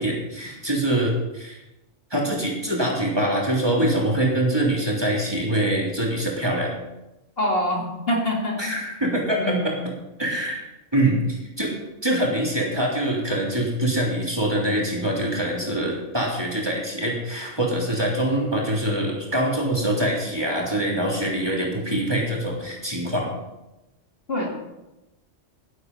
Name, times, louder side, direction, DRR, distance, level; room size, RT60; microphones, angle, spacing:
voice 1, 0.0-1.6 2.1-6.7 8.6-9.7 10.2-10.6 10.9-11.7 12.0-23.3, right 1 dB, 20° right, -3 dB, 3.3 m, -24 dB
voice 2, 7.4-8.7 9.4-9.9 24.3-24.6, left 1 dB, 50° left, -1 dB, 2.5 m, -25 dB
11.5 x 11.5 x 5.5 m, 0.98 s
omnidirectional pair, 1.3 m